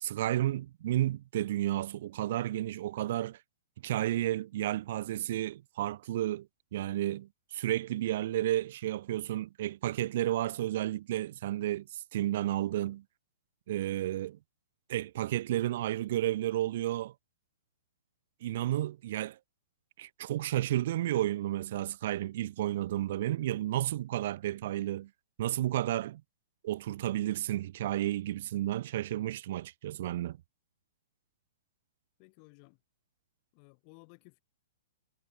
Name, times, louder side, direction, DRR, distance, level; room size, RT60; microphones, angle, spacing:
voice 1, 0.0-3.4 3.8-6.5 6.7-13.0 13.7-14.4 14.9-17.1 18.4-19.4 20.0-25.1 25.4-26.2 26.6-30.4, right 13 dB, 55° right, 0.3 m, -32 dB
voice 2, 32.2-32.8 33.5-34.4, left 40 dB or more, 40° left, 5.6 m, -57 dB
hypercardioid pair, 125°, 0 cm